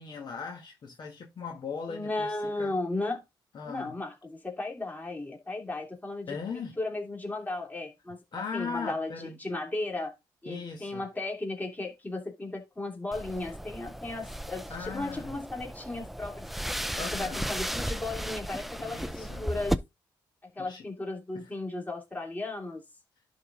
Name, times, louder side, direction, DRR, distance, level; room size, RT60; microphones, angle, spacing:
voice 1, 0.0-2.8 3.5-4.0 6.3-6.8 8.3-9.4 10.4-11.0 14.7-15.4 17.0-17.4 18.8-19.5 20.6-20.8 21.3-21.4, left 5 dB, 55° left, 1.5 m, -38 dB
voice 2, 1.9-3.2 3.6-8.2 8.5-9.1 9.4-10.1 10.4-16.5 17.1-19.8 20.5-22.8, left 2 dB, 20° left, 2.7 m, -35 dB
sound 1, 13.1-19.7, equal, ahead, 0.5 m, -35 dB
11.0 x 4.0 x 3.8 m
cardioid pair, 95°, 9 cm